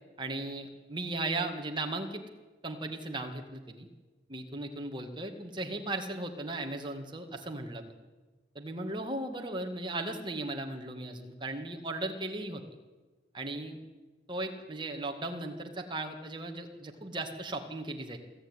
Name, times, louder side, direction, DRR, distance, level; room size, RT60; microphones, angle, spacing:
voice 1, 0.2-2.3 2.6-3.9 4.3-7.8 8.6-12.6 13.3-13.8 14.3-18.2, right 2 dB, 25° right, 4 dB, 2.1 m, -37 dB
22.5 x 15.0 x 9.8 m, 1.3 s
head